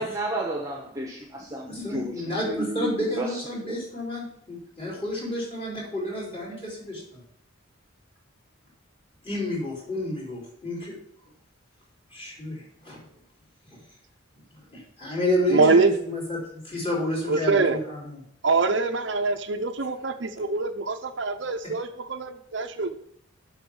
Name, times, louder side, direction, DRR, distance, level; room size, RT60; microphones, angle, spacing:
voice 1, 0.0-2.9 3.2-3.3 3.6-3.7, right 1 dB, 15° right, 1.1 m, -31 dB
voice 2, 1.7-7.2 9.2-11.0 12.1-13.0 13.7-13.8 14.5-18.2 21.6-21.7, left 1 dB, 25° left, 4.0 m, -30 dB
voice 3, 15.5-15.9 17.3-17.8 18.4-23.0, right 3 dB, 60° right, 0.7 m, -24 dB
8.0 x 5.9 x 7.1 m
head